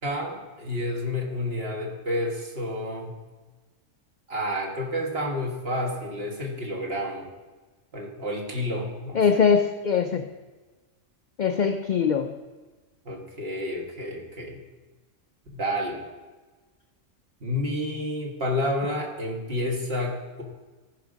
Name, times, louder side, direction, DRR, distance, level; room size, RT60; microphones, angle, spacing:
voice 1, 0.0-3.2 4.3-7.3 7.9-9.4 13.1-14.6 15.5-16.1 17.4-20.4, left 1 dB, 50° right, -1 dB, 1.8 m, -30 dB
voice 2, 9.1-10.3 11.4-12.3, left 6 dB, 65° left, 7 dB, 0.4 m, -22 dB
14.5 x 5.1 x 5.1 m, 1.3 s
omnidirectional pair, 1.3 m